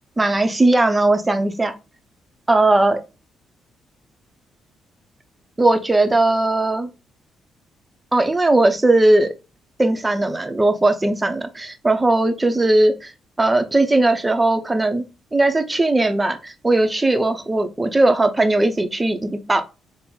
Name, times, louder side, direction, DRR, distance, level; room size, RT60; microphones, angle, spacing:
voice 1, 0.2-1.7 2.5-3.0 5.6-6.9 8.1-9.3 9.8-12.9 13.4-15.0 15.3-19.6, right 2 dB, 15° right, 0.6 m, -18 dB
4.3 x 2.0 x 3.8 m
cardioid pair, 90°, 0 cm